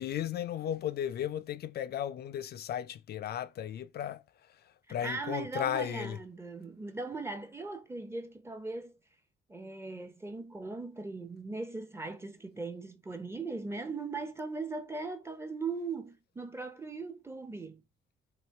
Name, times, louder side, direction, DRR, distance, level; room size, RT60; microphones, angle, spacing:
voice 1, 0.0-4.2 4.5-4.6 4.9-6.2, left 10 dB, 55° left, 0.4 m, -35 dB
voice 2, 4.9-9.0 9.5-17.8, right 3 dB, 15° right, 0.6 m, -39 dB
3.1 x 3.0 x 3.2 m
cardioid pair, 90°, 20 cm